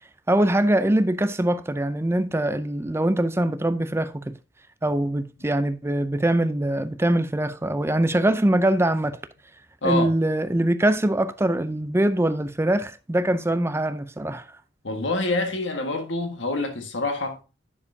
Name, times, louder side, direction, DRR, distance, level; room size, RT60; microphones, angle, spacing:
voice 1, 0.3-4.4 4.8-9.2 9.8-14.4, right 1 dB, 15° right, 0.5 m, -23 dB
voice 2, 14.8-17.4, left 2 dB, 70° left, 1.6 m, -26 dB
9.8 x 6.5 x 2.7 m
head